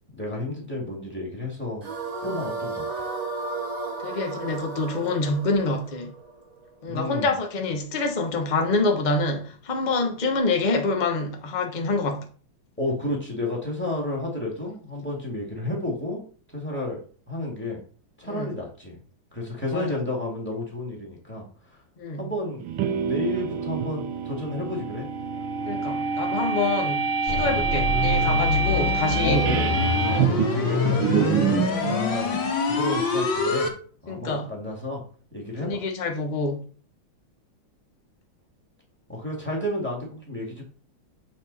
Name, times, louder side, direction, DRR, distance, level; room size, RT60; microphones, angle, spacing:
voice 1, 0.2-1.8 2.2-3.1 6.9-7.3 12.8-16.2 16.5-17.0 17.3-17.8 18.2-19.0 19.3-21.8 22.2-22.7 23.0-25.1 29.2-29.7 30.1-33.7 34.0-35.0 35.3-35.8 39.1-40.6, left 1 dB, 5° left, 2.2 m, -31 dB
sound 1, 1.8-7.0, right 3 dB, 35° right, 0.6 m, -34 dB
voice 2, 4.0-6.1 6.8-12.3 18.2-18.5 19.7-20.0 22.0-22.3 25.6-29.5 30.1-30.4 31.7-32.0 34.1-34.5 35.6-36.6, left 3 dB, 30° left, 0.9 m, -26 dB
sound 2, 22.6-31.7, right 6 dB, 85° right, 1.6 m, -26 dB
sound 3, 27.3-33.7, left 3 dB, 65° left, 2.1 m, -25 dB
7.7 x 4.3 x 4.2 m
omnidirectional pair, 2.2 m